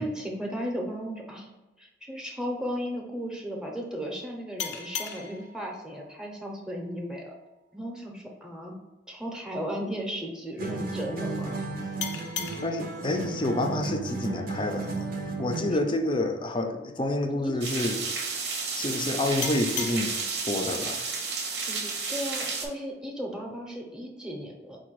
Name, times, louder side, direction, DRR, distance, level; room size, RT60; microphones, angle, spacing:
voice 1, 0.0-1.5 1.8-7.3 7.7-8.8 9.1-11.7 17.3-17.5 21.6-24.8, equal, 5° right, -1 dB, 0.7 m, -35 dB
sound 1, 4.6-7.8 12.0-15.2 19.4-22.4, left 7 dB, 90° left, 0.5 m, -41 dB
sound 2, 10.6-15.9, right 3 dB, 55° right, 0.6 m, -34 dB
voice 2, 12.6-15.1 15.4-18.1 18.4-20.2 20.5-21.1, left 1 dB, 30° left, 5 dB, 0.4 m, -28 dB
sound 3, 17.6-22.7, right 4 dB, 80° right, 0.9 m, -32 dB
4.9 x 2.2 x 4.6 m, 1.1 s
head